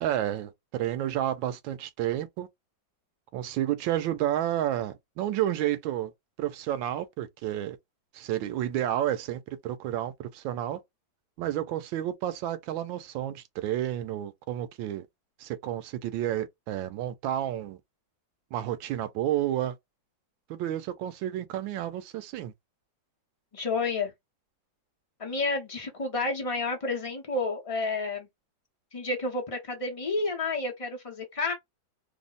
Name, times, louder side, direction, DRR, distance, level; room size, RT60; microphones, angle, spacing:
voice 1, 0.0-2.5 3.3-6.1 6.4-7.8 8.1-10.8 11.4-15.1 15.4-17.8 18.5-19.7 20.5-22.5, right 12 dB, 85° right, 1.3 m, -30 dB
voice 2, 23.5-24.1 25.2-28.3 28.9-31.5, left 3 dB, 35° left, 0.5 m, -30 dB
3.3 x 2.1 x 3.9 m
omnidirectional pair, 2.1 m